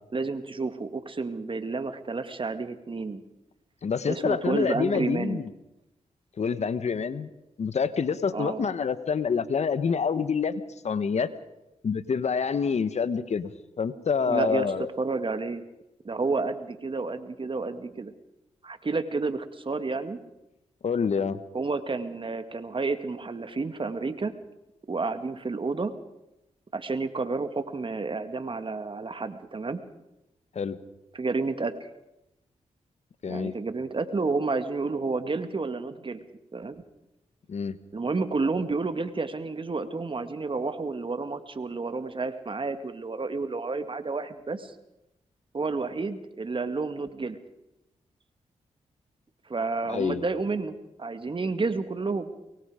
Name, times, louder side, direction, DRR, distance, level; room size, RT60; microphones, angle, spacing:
voice 1, 0.1-3.2 4.1-5.4 8.3-8.7 14.2-14.7 15.0-15.6 16.0-18.1 18.6-20.2 21.5-24.3 24.9-26.0 26.7-29.8 31.1-31.9 33.3-36.2 36.5-36.8 37.9-44.7 45.5-47.4 49.5-52.3, right 3 dB, 40° right, 9 dB, 2.2 m, -30 dB
voice 2, 3.8-5.5 6.4-7.3 7.6-11.3 11.8-13.5 13.8-14.9 20.8-21.4 30.5-30.8 33.2-33.5 37.5-37.8 49.9-50.2, left 6 dB, 60° left, 14 dB, 1.3 m, -27 dB
24.0 x 22.5 x 5.1 m, 0.89 s
cardioid pair, 55°, 13 cm